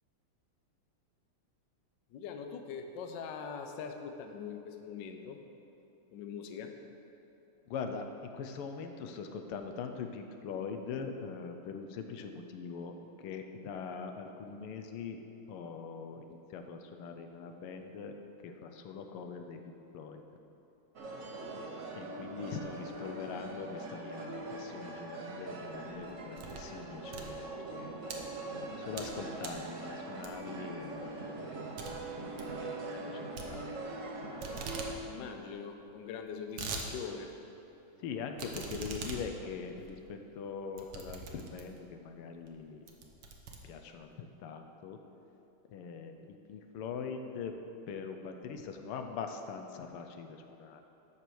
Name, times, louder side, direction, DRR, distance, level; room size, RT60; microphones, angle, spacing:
voice 1, 2.1-5.4 6.1-6.7 19.2-19.3 35.0-37.3, left 6 dB, 65° left, 5 dB, 1.3 m, -42 dB
voice 2, 7.7-15.2 15.5-18.2 18.4-20.2 22.0-27.5 27.7-27.9 28.8-32.8 33.0-33.7 38.0-42.8 43.6-45.0 45.7-47.5 47.9-50.8, left 5 dB, 85° left, 5 dB, 1.6 m, -42 dB
sound 1, 20.9-34.9, right 2 dB, 55° right, 0.9 m, -42 dB
sound 2, 25.8-26.7 27.0-28.2 28.7-29.1 29.4-29.7 30.2-30.6 31.0-31.1 31.4-31.5 31.8-31.9 32.2-32.5 33.4-34.1 34.4-34.9 35.3-35.4 35.5-35.6 36.2-36.9 37.3-37.4 38.4-41.9 42.4-42.6 42.9-44.1, right 4 dB, 90° right, 1.9 m, -43 dB
12.0 x 4.7 x 6.9 m, 3.0 s
omnidirectional pair, 2.4 m